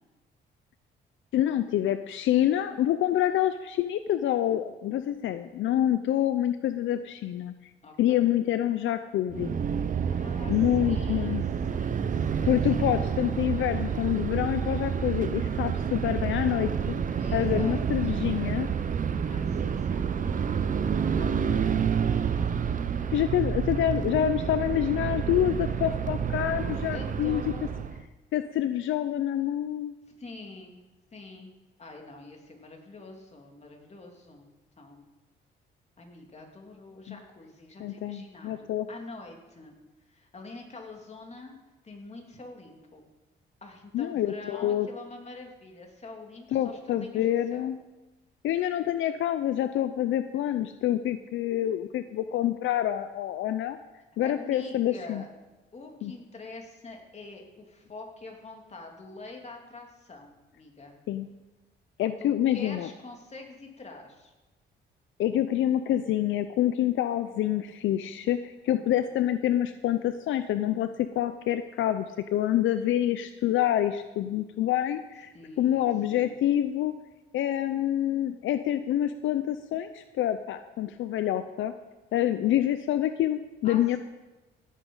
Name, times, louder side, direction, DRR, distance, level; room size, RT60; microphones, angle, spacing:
voice 1, 1.3-7.5 8.0-9.6 10.5-11.4 12.4-16.7 17.3-18.7 23.1-27.4 28.3-29.9 37.1-37.2 37.8-38.9 43.9-44.9 46.5-47.8 48.4-53.8 54.2-55.2 56.0-56.1 61.1-61.3 62.0-62.9 65.2-76.9 77.3-81.7 82.1-84.0, left 11 dB, 75° left, 10 dB, 0.6 m, -27 dB
voice 2, 7.8-8.3 10.1-11.4 11.7-13.1 17.2-17.8 19.3-20.6 21.0-22.5 23.0-23.1 26.9-27.9 30.2-30.8 31.1-31.5 31.8-34.5 34.8-35.0 36.0-39.8 40.1-41.5 41.8-43.0 43.6-47.7 54.2-55.3 55.7-60.9 62.2-64.3 68.7-69.0 75.3-76.3 83.6-83.8, left 3 dB, 35° left, 2 dB, 3.0 m, -46 dB
sound 1, 9.3-28.0, right 7 dB, 40° right, 0.8 m, -29 dB
16.5 x 8.5 x 5.6 m, 1.1 s
cardioid pair, 90°, 20 cm